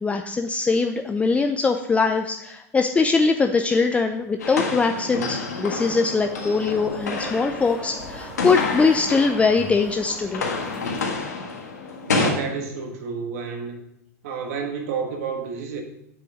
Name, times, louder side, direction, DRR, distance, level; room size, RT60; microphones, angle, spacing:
voice 1, 0.0-10.5, left 4 dB, 15° left, 6 dB, 0.5 m, -22 dB
sound 1, 4.4-9.9 10.1-12.3, left 4 dB, 85° left, 1.6 m, -29 dB
sound 2, 5.2-11.2, right 2 dB, 10° right, 1.5 m, -41 dB
voice 2, 12.1-13.8 14.2-15.8, right 5 dB, 65° right, 3 dB, 1.6 m, -30 dB
7.7 x 6.9 x 5.0 m, 0.81 s
hypercardioid pair, 95°, 9 cm